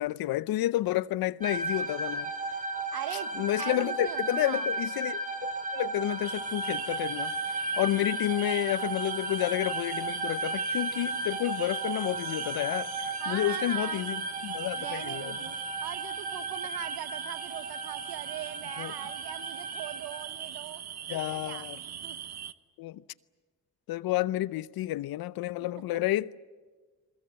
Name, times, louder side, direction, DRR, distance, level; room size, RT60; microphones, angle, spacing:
voice 1, 0.0-2.3 3.4-7.3 7.8-15.3 18.8-18.9 21.1-21.8 22.8-23.0 23.9-26.4, left 15 dB, 75° left, 0.7 m, -30 dB
sound 1, 1.4-20.2, right 2 dB, 20° right, 3.9 m, -35 dB
voice 2, 2.9-4.7 13.2-14.1 14.8-20.8 21.1-22.2 25.6-25.8, right 13 dB, 85° right, 1.3 m, -41 dB
sound 2, 6.2-22.5, right 9 dB, 45° right, 0.9 m, -41 dB
29.5 x 22.0 x 7.7 m
supercardioid pair, 70°, 36 cm